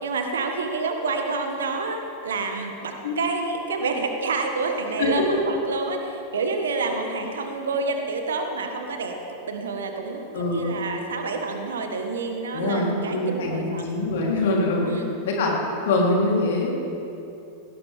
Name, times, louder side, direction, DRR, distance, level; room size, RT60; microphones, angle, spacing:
voice 1, 0.0-13.9 14.8-15.1, right 3 dB, 65° right, 4 dB, 1.6 m, -28 dB
voice 2, 5.0-5.4 10.3-10.7 12.5-14.9 15.2-15.5 15.8-16.7, left 2 dB, 55° left, -2 dB, 3.6 m, -23 dB
19.0 x 18.0 x 3.7 m, 2.9 s
figure-of-eight pair, 90°, 0 cm